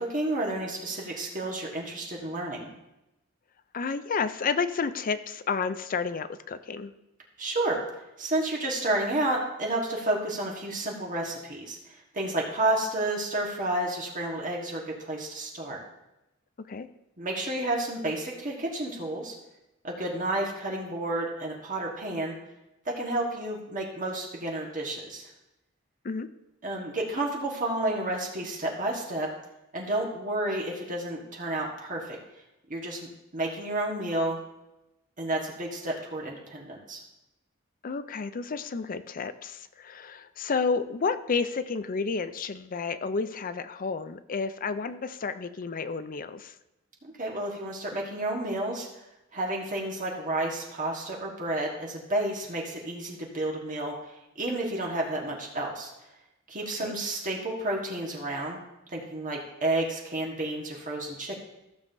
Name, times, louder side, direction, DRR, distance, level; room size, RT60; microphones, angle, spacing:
voice 1, 0.0-2.7 7.4-7.8 8.2-15.8 17.2-19.3 19.8-22.3 22.8-25.3 26.6-29.3 29.7-32.2 32.7-34.4 35.2-37.0 47.2-48.9 49.3-53.9 54.3-55.9 56.5-58.6 58.9-61.4, right 1 dB, 40° right, -1 dB, 1.5 m, -31 dB
voice 2, 3.7-6.9 16.6-16.9 26.0-26.3 37.8-46.5 56.8-56.9, left 5 dB, 40° left, 12 dB, 0.5 m, -31 dB
15.0 x 7.2 x 2.7 m, 0.93 s
head